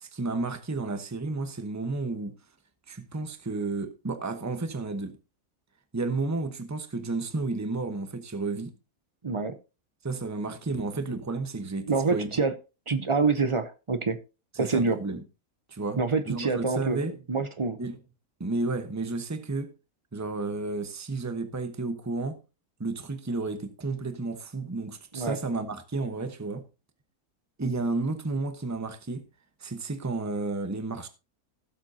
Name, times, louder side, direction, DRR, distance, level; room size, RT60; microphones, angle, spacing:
voice 1, 0.0-2.3 2.9-5.2 5.9-8.7 10.0-12.3 14.6-15.2 15.7-16.0 16.3-17.2 17.8-18.0 18.4-19.7 20.1-22.4 22.8-26.6 27.6-29.3 29.6-31.1, right 3 dB, 15° right, 0.9 m, -32 dB
voice 2, 9.2-9.5 11.9-12.5 12.9-14.2 14.6-15.0 16.0-17.0 17.3-17.8 25.1-25.4, right 4 dB, 40° right, 0.4 m, -26 dB
17.0 x 7.5 x 2.7 m
omnidirectional pair, 1.6 m